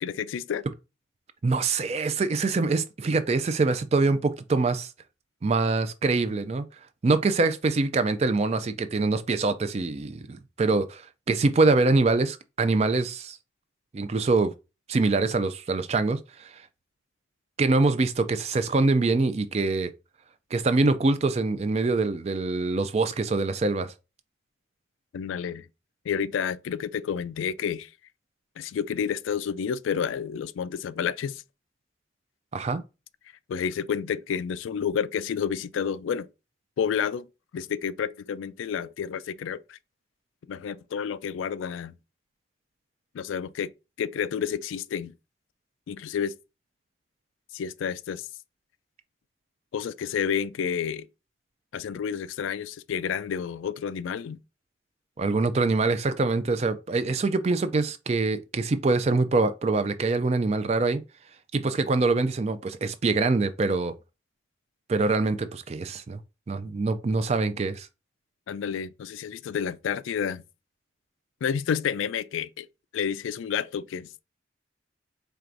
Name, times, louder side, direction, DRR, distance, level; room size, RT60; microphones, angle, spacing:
voice 1, 0.0-0.7 25.1-25.7 26.0-27.9 28.6-31.4 33.5-36.3 36.8-37.3 37.5-39.8 40.5-41.9 43.1-43.7 44.0-45.1 45.9-46.3 47.5-48.3 49.7-51.1 51.7-54.4 68.5-70.4 71.4-72.7 72.9-74.2, left 7 dB, 85° left, 0.3 m, -30 dB
voice 2, 1.4-4.9 5.4-6.6 7.0-11.0 11.3-13.4 13.9-14.5 14.9-16.5 17.6-19.9 20.5-23.9 32.5-32.8 55.2-61.0 61.5-63.9 64.9-66.2 66.5-67.9, right 3 dB, 35° right, 0.3 m, -24 dB
4.6 x 3.4 x 2.5 m
head